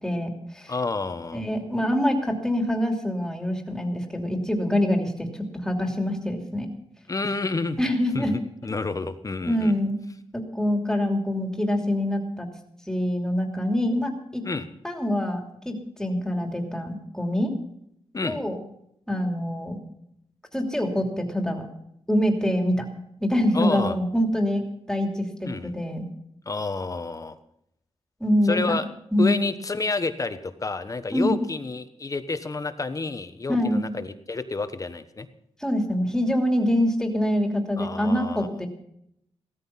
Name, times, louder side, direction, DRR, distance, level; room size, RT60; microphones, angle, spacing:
voice 1, 0.0-0.7 1.3-5.3 5.6-6.7 7.8-8.3 9.5-10.0 10.3-12.5 12.9-14.4 14.8-17.5 18.2-18.6 19.1-19.8 20.5-21.7 22.1-22.8 23.2-24.6 24.9-25.2 25.6-26.1 28.2-28.8 29.1-29.4 31.1-31.4 33.5-33.8 35.6-38.7, equal, 5° left, 4 dB, 2.9 m, -25 dB
voice 2, 0.7-1.4 7.1-7.8 8.1-9.8 14.4-14.6 18.1-18.4 23.5-23.9 25.4-25.7 26.5-27.3 28.5-28.8 29.2-35.3 37.8-38.5, left 3 dB, 30° left, 10 dB, 1.2 m, -29 dB
16.5 x 13.5 x 5.8 m, 0.75 s
wide cardioid pair, 140°, 11 cm